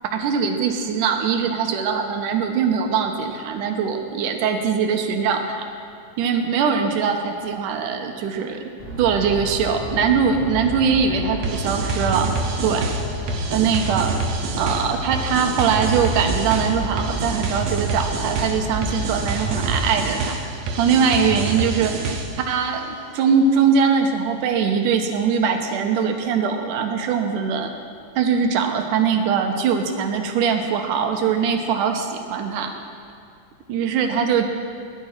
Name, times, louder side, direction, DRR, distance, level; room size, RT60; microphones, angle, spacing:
voice 1, 0.0-5.6 6.2-8.6 9.0-12.3 12.6-12.9 13.5-14.2 14.6-20.4 20.8-21.9 22.4-27.7 28.2-32.7 33.7-34.5, right 6 dB, 85° right, 5 dB, 2.6 m, -21 dB
sound 1, 8.8-20.0, right 1 dB, 15° left, 1.8 m, -31 dB
sound 2, 10.4-15.4, left 3 dB, 90° left, 2.9 m, -36 dB
sound 3, 11.4-22.5, right 4 dB, 65° right, 2.1 m, -27 dB
20.0 x 11.0 x 4.4 m, 2.3 s
omnidirectional pair, 3.6 m